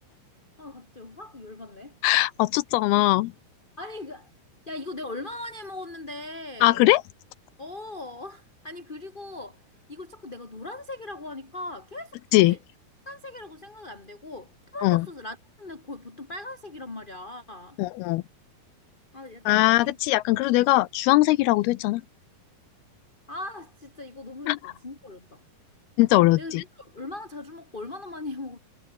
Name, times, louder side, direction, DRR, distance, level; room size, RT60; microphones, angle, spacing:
voice 1, 0.6-2.0 3.8-4.3 4.6-6.9 7.6-9.6 9.9-12.6 13.0-17.8 19.1-20.0 20.6-20.7 23.3-25.4 26.4-28.6, left 2 dB, 15° left, 1.8 m, -39 dB
voice 2, 2.0-3.3 6.6-7.0 12.3-12.6 14.8-15.1 17.8-18.2 19.5-22.0 24.5-24.7 26.0-26.6, left 18 dB, 80° left, 2.6 m, -20 dB
omnidirectional pair, 4.6 m